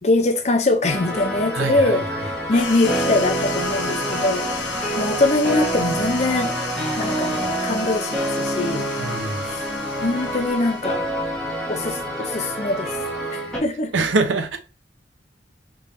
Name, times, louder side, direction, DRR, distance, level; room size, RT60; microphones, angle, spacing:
voice 1, 0.0-6.6 7.0-8.9 9.5-9.6 10.0-11.0 11.7-12.9 13.3-13.9, left 2 dB, 35° left, 0.6 m, -23 dB
sound 1, 0.8-13.6, right 1 dB, 5° left, 1.1 m, -27 dB
voice 2, 1.5-2.0 9.0-9.5 13.9-14.6, right 3 dB, 85° right, 0.7 m, -23 dB
sound 2, 2.5-11.4, left 5 dB, 90° left, 0.9 m, -33 dB
3.5 x 3.3 x 2.5 m
head